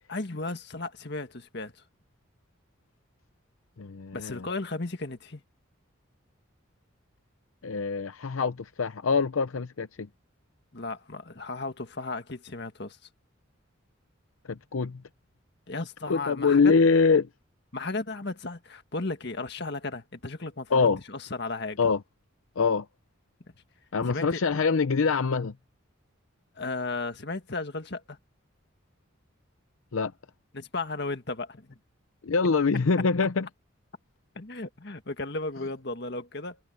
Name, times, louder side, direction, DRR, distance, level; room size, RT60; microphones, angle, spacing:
voice 1, 0.1-1.7 4.1-5.4 10.7-13.0 15.7-16.7 17.7-21.8 24.0-24.4 26.6-28.2 30.5-31.8 34.3-36.6, left 3 dB, 55° left, 1.8 m, -35 dB
voice 2, 3.8-4.5 7.6-10.1 14.5-15.0 16.1-17.3 20.7-21.0 21.8-22.0 22.6-22.9 23.9-25.5 29.9-30.1 32.2-33.5, left 4 dB, 85° left, 0.6 m, -24 dB
head